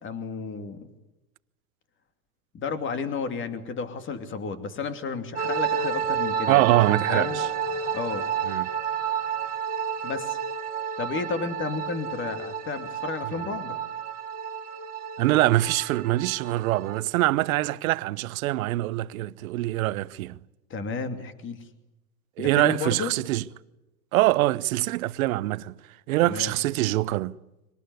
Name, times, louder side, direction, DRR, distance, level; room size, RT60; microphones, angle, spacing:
voice 1, 0.0-0.9 2.5-7.4 7.9-8.2 10.0-10.4 11.0-13.8 20.7-21.6 22.4-23.1 26.2-26.5, left 4 dB, 25° left, 2.8 m, -32 dB
sound 1, 5.4-17.0, right 7 dB, 20° right, 2.4 m, -31 dB
sound 2, 5.7-10.7, right 1 dB, 5° left, 4.5 m, -48 dB
voice 2, 6.5-7.5 8.5-8.7 15.2-20.4 22.4-23.4 24.1-25.7 26.1-27.4, right 17 dB, 65° right, 1.0 m, -24 dB
25.0 x 19.0 x 9.5 m
hypercardioid pair, 115°, 45 cm